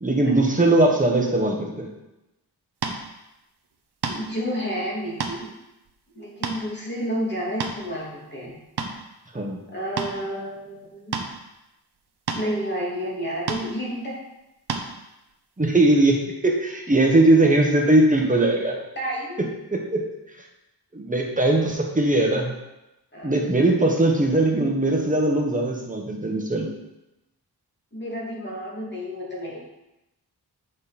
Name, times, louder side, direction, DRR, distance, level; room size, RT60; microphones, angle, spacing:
voice 1, 0.0-1.9 9.3-9.6 15.6-18.8 19.4-20.1 20.9-22.5 23.2-26.7, right 2 dB, 20° right, 0 dB, 1.4 m, -20 dB
sound 1, 2.8-3.0 4.0-4.3 5.0-5.4 5.9-6.0 6.4-6.6 7.4-7.9 8.5-9.0 10.0-10.1 11.1-11.3 12.3-12.5 13.5-13.7 14.7-14.9, right 5 dB, 75° right, 0.9 m, -28 dB
voice 2, 4.1-5.5 6.1-8.5 9.7-11.1 12.3-14.2 17.4-17.5 19.0-19.4 23.1-23.3 27.9-29.6, equal, 25° left, -5 dB, 2.6 m, -30 dB
8.1 x 5.2 x 4.3 m, 0.94 s
wide cardioid pair, 90°, 40 cm